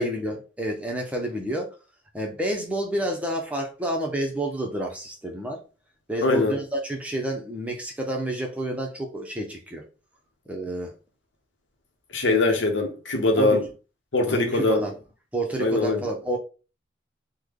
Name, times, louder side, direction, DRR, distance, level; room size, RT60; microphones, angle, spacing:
voice 1, 0.0-1.7 2.1-5.6 6.1-9.8 10.5-10.9 13.4-13.6 14.3-15.0 15.3-16.4, right 1 dB, 5° right, 0.6 m, -29 dB
voice 2, 6.2-6.6 12.1-13.6 14.1-14.8 15.6-16.0, left 2 dB, 75° left, 0.8 m, -22 dB
3.2 x 2.1 x 3.6 m
head